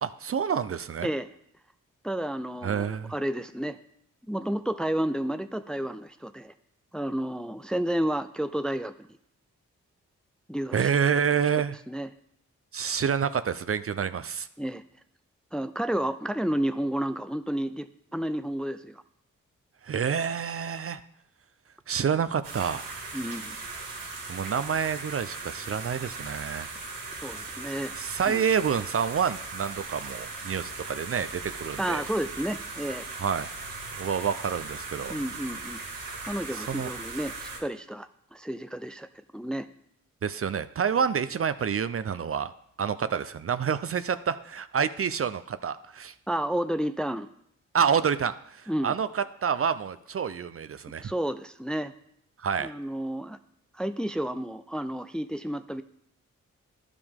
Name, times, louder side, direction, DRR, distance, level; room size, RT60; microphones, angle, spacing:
voice 1, 0.0-1.1 2.6-3.1 10.7-11.8 12.7-14.5 19.8-21.0 21.9-22.8 24.3-26.7 28.0-32.0 33.2-33.5 34.0-35.2 36.5-36.9 40.2-42.5 42.8-46.1 47.7-51.1 52.4-52.7, right 7 dB, 45° right, 13 dB, 0.5 m, -28 dB
voice 2, 2.0-3.8 4.3-6.5 6.9-8.9 10.5-10.9 11.9-12.1 14.6-14.8 15.5-19.0 23.1-23.6 27.2-27.9 28.3-28.5 31.8-33.1 35.1-35.8 36.3-39.1 39.3-39.7 46.3-47.3 48.7-48.9 51.0-51.9 52.6-53.4 53.7-55.8, right 1 dB, 5° left, 11 dB, 0.5 m, -31 dB
sound 1, 22.4-37.6, right 3 dB, 90° right, 1.8 m, -39 dB
11.5 x 5.0 x 3.6 m, 0.73 s
supercardioid pair, 45°, 32 cm